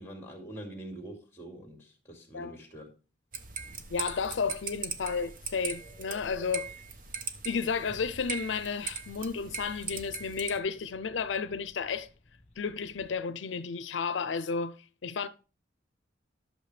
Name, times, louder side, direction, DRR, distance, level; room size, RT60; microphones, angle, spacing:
voice 1, 0.0-2.9, right 1 dB, 15° left, 2.5 m, -44 dB
sound 1, 3.3-10.6, right 5 dB, 50° right, 0.9 m, -40 dB
voice 2, 3.9-6.7 7.4-12.1 12.6-14.8 15.0-15.3, left 5 dB, 85° left, 0.5 m, -32 dB
sound 2, 5.7-13.3, equal, 40° left, 1.5 m, -56 dB
11.5 x 6.4 x 3.3 m
head